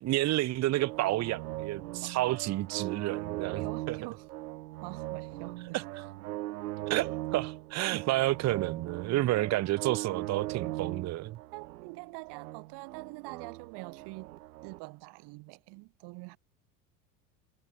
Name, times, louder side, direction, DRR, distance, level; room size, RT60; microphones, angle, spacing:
voice 1, 0.0-4.0 5.7-5.8 6.9-11.4, right 16 dB, 35° right, 0.7 m, -30 dB
sound 1, 0.8-14.8, right 17 dB, 90° right, 1.0 m, -39 dB
voice 2, 3.5-4.3 4.8-5.8 7.9-8.1 9.5-9.6 11.5-14.3 14.6-16.4, right 25 dB, 60° right, 3.9 m, -45 dB
supercardioid pair, 100°, 45 cm